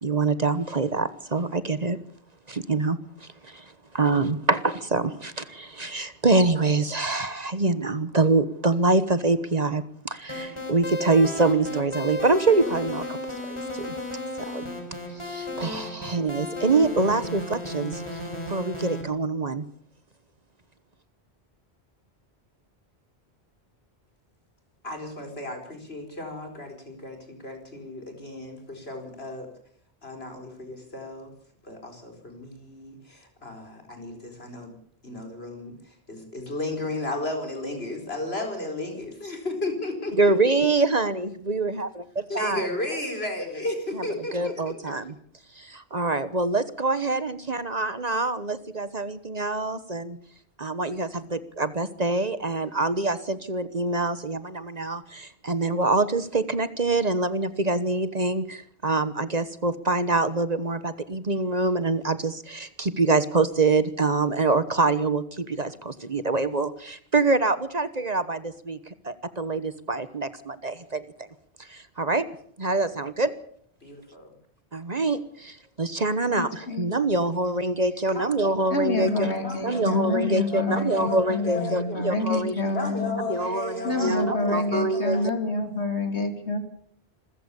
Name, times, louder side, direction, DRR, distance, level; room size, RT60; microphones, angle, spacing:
voice 1, 0.0-2.0 2.5-13.2 13.5-13.9 14.5-14.6 15.1-18.2 18.5-19.7 40.2-42.7 43.9-44.0 44.3-45.1 45.6-50.2 50.6-71.0 71.6-72.3 72.6-73.3 74.7-79.3 79.6-82.7 83.3-85.2, right 3 dB, 40° right, 13 dB, 1.2 m, -25 dB
sound 1, 10.3-19.0, left 1 dB, 25° left, 5.0 m, -34 dB
voice 2, 24.8-29.5 30.0-31.3 31.6-34.7 35.0-35.8 36.1-40.3 42.3-44.9 73.8-74.3 78.1-78.5 79.0-82.0 82.7-85.2, left 2 dB, 65° left, 4 dB, 4.9 m, -34 dB
voice 3, 76.4-76.9 78.7-83.2 83.8-86.6, left 2 dB, 85° left, 7 dB, 3.1 m, -28 dB
26.5 x 15.0 x 7.0 m, 0.63 s
omnidirectional pair, 1.1 m